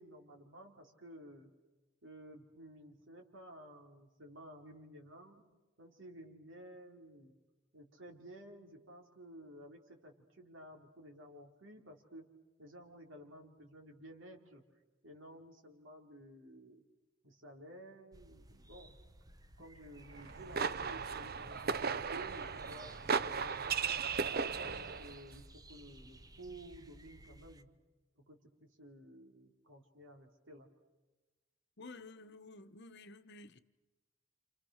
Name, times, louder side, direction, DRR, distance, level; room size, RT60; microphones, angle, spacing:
voice 1, 0.0-1.5 2.0-5.5 5.8-7.3 7.7-12.3 12.6-14.6 15.0-16.8 17.2-19.0 19.6-24.0 24.5-27.7 28.2-30.7, right 1 dB, 70° right, 4.3 m, -54 dB
sound 1, 18.1-27.6, right 1 dB, 20° right, 1.1 m, -57 dB
sound 2, 20.1-25.2, right 5 dB, 50° right, 0.8 m, -36 dB
voice 2, 31.8-33.6, left 3 dB, 60° left, 1.1 m, -52 dB
29.5 x 29.0 x 6.5 m
head